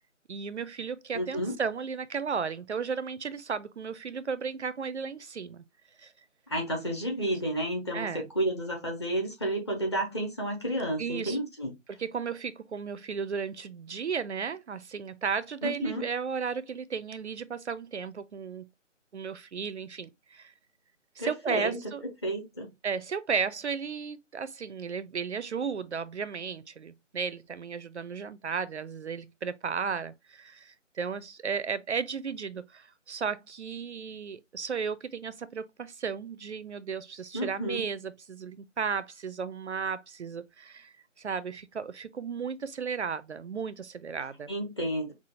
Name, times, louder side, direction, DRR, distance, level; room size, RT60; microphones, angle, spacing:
voice 1, 0.3-5.6 6.0-6.1 7.9-8.3 11.0-11.4 12.0-18.7 19.1-20.5 21.2-22.0 22.8-44.5, right 6 dB, 65° right, 0.5 m, -34 dB
voice 2, 1.1-1.5 6.5-11.7 15.6-16.0 21.2-21.8 22.2-22.7 37.3-37.8 44.5-45.1, right 1 dB, 20° left, 0.9 m, -31 dB
5.5 x 2.4 x 2.7 m
figure-of-eight pair, 160°, 38 cm